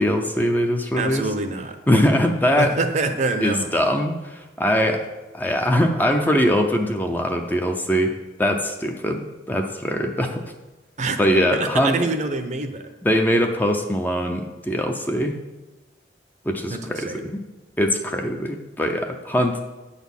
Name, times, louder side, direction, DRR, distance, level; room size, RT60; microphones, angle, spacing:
voice 1, 0.0-1.3 1.9-2.7 3.4-5.1 5.3-10.4 11.2-12.0 13.0-15.4 16.5-17.4 17.8-19.6, equal, 10° left, 4 dB, 0.5 m, -22 dB
voice 2, 1.0-2.1 2.6-3.7 11.0-11.2 11.5-12.9 16.7-17.2, right 3 dB, 40° right, 7 dB, 0.7 m, -26 dB
9.1 x 4.2 x 7.2 m, 1.1 s
head